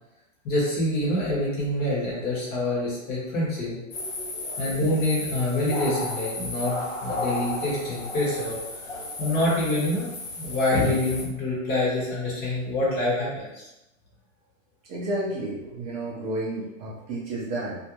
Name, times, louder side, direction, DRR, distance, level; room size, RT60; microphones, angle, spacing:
voice 1, 0.4-3.8 4.6-8.6 9.2-10.1 10.3-13.7, left 1 dB, 25° left, -6 dB, 0.8 m, -26 dB
sound 1, 3.9-11.3, left 2 dB, 50° left, 0.8 m, -34 dB
voice 2, 4.3-4.7 7.2-7.4 8.9-9.4 10.5-10.6 14.9-17.8, right 1 dB, 35° right, -6 dB, 0.5 m, -32 dB
2.4 x 2.1 x 2.9 m, 0.95 s
hypercardioid pair, 135°, 41 cm